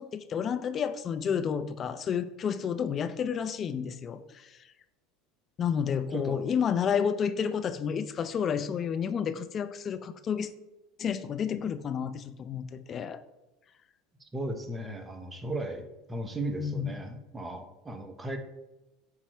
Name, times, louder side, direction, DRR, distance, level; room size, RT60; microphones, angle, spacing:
voice 1, 0.0-4.6 5.6-10.5 11.0-13.2 16.6-16.9, left 7 dB, 40° left, 11 dB, 0.5 m, -30 dB
voice 2, 6.1-6.4 14.2-18.4, right 1 dB, 20° right, 7 dB, 1.0 m, -36 dB
8.4 x 3.0 x 4.5 m, 1.0 s
hypercardioid pair, 85°, 0 cm